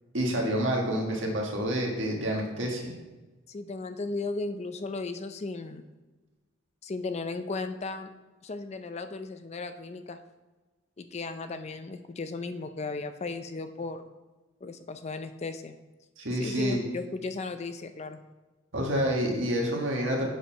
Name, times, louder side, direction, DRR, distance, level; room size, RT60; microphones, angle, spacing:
voice 1, 0.1-2.9 16.2-16.8 18.7-20.3, equal, 75° right, 0 dB, 1.7 m, -28 dB
voice 2, 3.5-5.8 6.8-8.1 8.4-10.2 11.0-14.1 14.6-15.8 16.4-18.2, left 3 dB, 35° left, 9 dB, 0.4 m, -35 dB
8.2 x 4.6 x 5.4 m, 1.2 s
head